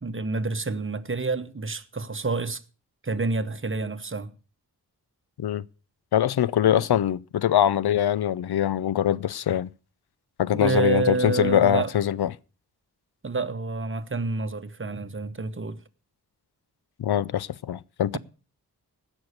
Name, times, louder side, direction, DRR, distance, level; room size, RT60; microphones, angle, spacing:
voice 1, 0.0-2.6 3.0-4.3 6.7-6.8 10.5-11.9 13.2-15.8, right 3 dB, 30° right, 1.1 m, -28 dB
voice 2, 6.1-9.7 10.4-12.3 17.0-18.2, left 10 dB, 80° left, 0.6 m, -23 dB
16.5 x 6.3 x 6.5 m
wide cardioid pair, 70°, 38 cm